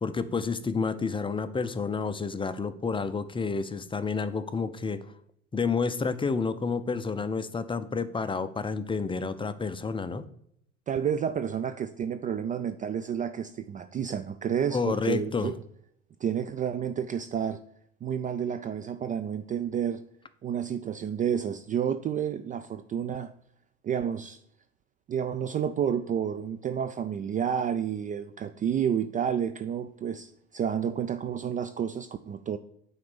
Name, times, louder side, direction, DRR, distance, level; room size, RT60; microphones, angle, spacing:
voice 1, 0.0-5.0 5.5-10.3 14.7-15.5, left 4 dB, 15° left, 0.6 m, -30 dB
voice 2, 10.9-15.6 16.2-17.6 18.0-20.0 20.4-23.3 23.8-24.4 25.1-32.6, right 8 dB, 25° right, 0.4 m, -30 dB
9.2 x 4.1 x 6.7 m
figure-of-eight pair, 70°, 35 cm